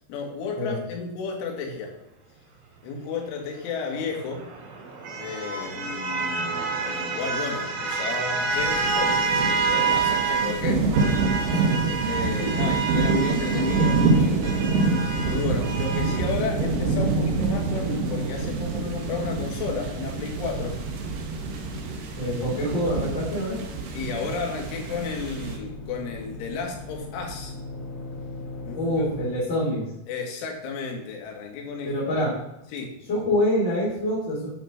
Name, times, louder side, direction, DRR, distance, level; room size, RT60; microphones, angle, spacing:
voice 1, 0.1-2.0 2.8-4.5 5.2-11.1 12.1-14.6 15.2-20.8 23.9-27.5 28.7-28.8 30.1-32.3 32.7-32.9, left 5 dB, 75° left, 1 dB, 4.3 m, -33 dB
sound 1, 4.0-10.6 10.9-16.3, right 4 dB, 85° right, 4.6 m, -28 dB
sound 2, 8.5-25.6, right 3 dB, 65° right, 2.3 m, -26 dB
voice 2, 11.4-12.0 12.4-12.5 22.2-23.6 28.8-29.8 31.8-32.3 33.1-34.5, equal, 25° left, -8 dB, 3.5 m, -25 dB
sound 3, 13.1-29.3, left 2 dB, 55° left, 5.0 m, -39 dB
11.0 x 6.1 x 5.9 m, 0.90 s
omnidirectional pair, 5.7 m